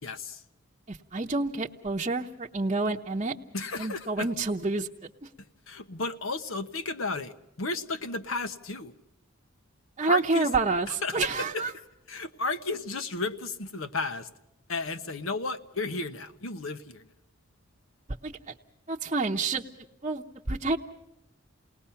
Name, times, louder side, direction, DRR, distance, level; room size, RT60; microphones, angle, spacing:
voice 1, 0.0-0.4 3.5-4.3 5.7-8.9 10.1-10.5 10.9-11.6 12.1-14.3 14.7-17.0, left 3 dB, 70° left, 10 dB, 1.1 m, -33 dB
voice 2, 0.9-3.3 3.8-4.9 5.2-5.3 10.0-11.7 18.2-18.5 18.9-19.6 20.0-20.8, right 3 dB, 30° right, 0 dB, 0.8 m, -28 dB
29.5 x 19.5 x 5.7 m, 0.92 s
head